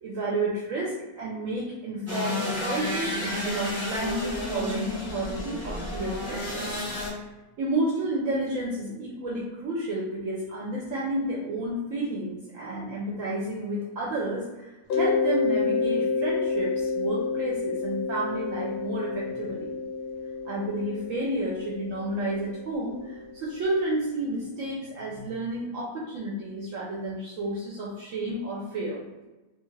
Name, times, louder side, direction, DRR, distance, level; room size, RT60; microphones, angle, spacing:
voice 1, 0.0-6.6 7.6-19.7 20.5-29.0, right 1 dB, 70° right, -5 dB, 0.8 m, -31 dB
sound 1, 2.1-7.1, left 1 dB, 15° right, 0.6 m, -31 dB
Mallet percussion, 14.9-23.5, left 4 dB, 90° left, 1.1 m, -29 dB
2.7 x 2.3 x 3.1 m, 1.1 s
omnidirectional pair, 1.6 m